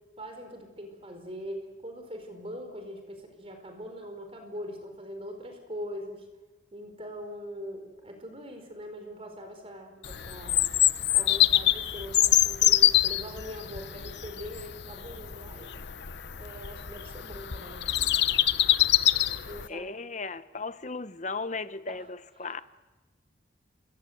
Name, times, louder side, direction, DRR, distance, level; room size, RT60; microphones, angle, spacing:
voice 1, 0.2-6.2 6.7-10.7 11.1-15.7 16.4-18.4 19.5-19.9 21.9-22.0, equal, 30° right, 4.5 m, -42 dB
Bird vocalization bird call bird song, 10.0-19.7, left 13 dB, 60° left, 0.8 m, -25 dB
voice 2, 19.7-22.6, left 4 dB, 40° left, 1.1 m, -36 dB
29.0 x 24.0 x 8.0 m
head